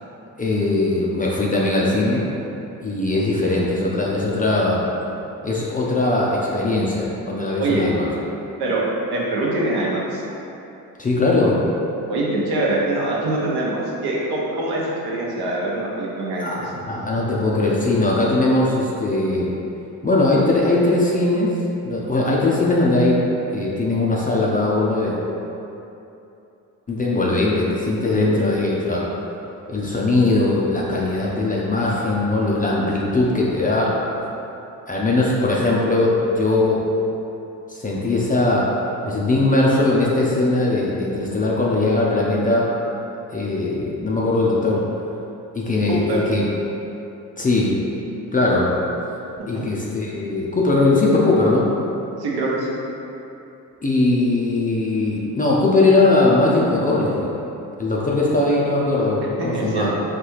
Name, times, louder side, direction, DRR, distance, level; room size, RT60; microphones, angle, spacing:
voice 1, 0.4-2.2 2.8-4.9 5.4-8.1 11.0-11.6 16.4-19.5 20.0-21.6 21.8-23.2 23.5-25.2 26.9-29.0 29.7-34.0 34.9-36.8 37.7-38.7 39.0-42.7 43.3-44.8 45.5-46.4 47.4-47.8 48.3-48.7 49.5-51.7 53.8-57.3 57.8-59.9, left 2 dB, 20° left, -4 dB, 0.5 m, -20 dB
voice 2, 9.1-10.2 12.1-16.6 45.9-46.2 49.5-49.7 52.2-52.8 59.4-60.0, right 2 dB, 60° right, -4 dB, 0.9 m, -24 dB
4.1 x 2.3 x 3.0 m, 2.9 s
hypercardioid pair, 50°, 44 cm